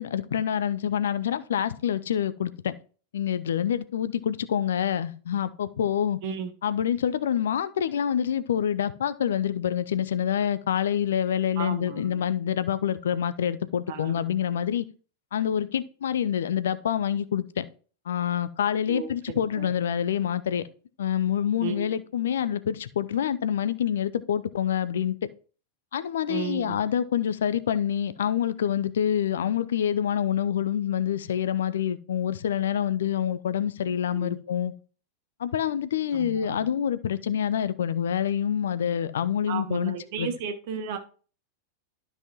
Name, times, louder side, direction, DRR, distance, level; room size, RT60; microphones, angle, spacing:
voice 1, 0.0-2.7 3.1-6.2 6.6-14.8 15.3-17.7 18.1-20.7 21.0-25.2 25.9-34.7 35.4-40.3, left 9 dB, 65° left, 0.5 m, -26 dB
voice 2, 11.6-12.3 13.9-14.3 18.9-19.1 19.3-19.7 21.6-21.9 26.3-26.8 34.1-34.4 36.2-36.7 39.5-41.0, right 7 dB, 50° right, 1.3 m, -34 dB
12.5 x 5.6 x 3.0 m
figure-of-eight pair, 90°, 0 cm